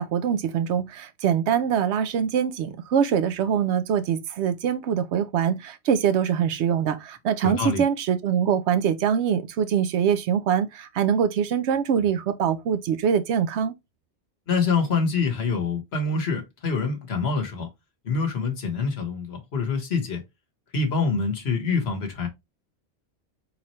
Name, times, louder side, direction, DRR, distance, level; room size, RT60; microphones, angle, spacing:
voice 1, 0.0-13.7, right 8 dB, 90° right, 0.9 m, -23 dB
voice 2, 7.4-7.8 14.5-17.7 18.0-20.2 20.7-22.3, left 4 dB, 70° left, 1.5 m, -25 dB
4.3 x 3.9 x 3.0 m
omnidirectional pair, 1.1 m